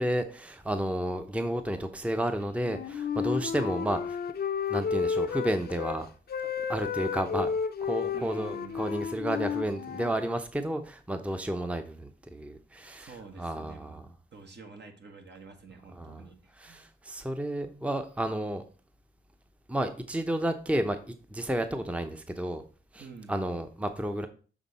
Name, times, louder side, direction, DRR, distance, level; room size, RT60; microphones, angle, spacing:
voice 1, 0.0-4.3 4.7-6.1 6.6-7.5 7.8-14.1 15.9-16.2 16.6-18.6 19.7-22.6 22.9-24.3, right 1 dB, 5° right, 8 dB, 0.7 m, -32 dB
Wind instrument woodwind instrument, 2.6-6.0 6.3-10.2, left 6 dB, 50° left, 0.6 m, -32 dB
voice 2, 8.1-9.0 13.0-14.0 14.3-16.8 23.0-23.4, right 4 dB, 60° right, 4 dB, 1.4 m, -48 dB
7.2 x 3.5 x 4.1 m, 0.38 s
cardioid pair, 60°, 20 cm